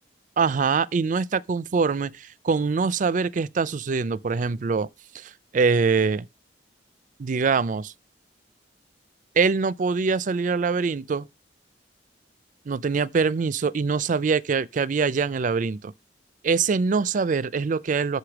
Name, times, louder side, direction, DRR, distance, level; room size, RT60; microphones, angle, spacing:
voice 1, 0.4-4.9 5.1-6.3 7.2-7.9 9.4-11.3 12.7-15.9 16.4-18.2, right 5 dB, 45° right, 0.4 m, -24 dB
6.7 x 5.0 x 5.9 m
head